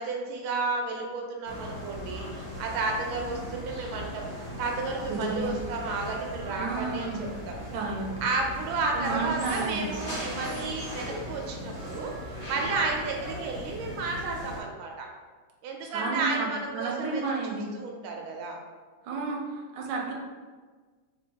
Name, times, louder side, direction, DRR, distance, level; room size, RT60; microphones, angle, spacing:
voice 1, 0.0-4.3 4.6-7.6 8.2-12.2 12.5-15.1 15.6-18.6, right 3 dB, 90° right, 1 dB, 1.4 m, -32 dB
sound 1, 1.4-14.6, equal, 40° left, 0.7 m, -38 dB
voice 2, 5.1-5.5 6.6-7.3 7.7-8.1 8.9-9.9 15.8-17.7 19.0-20.1, right 3 dB, 70° right, -1 dB, 1.3 m, -32 dB
3.4 x 3.4 x 2.8 m, 1.4 s
omnidirectional pair, 2.2 m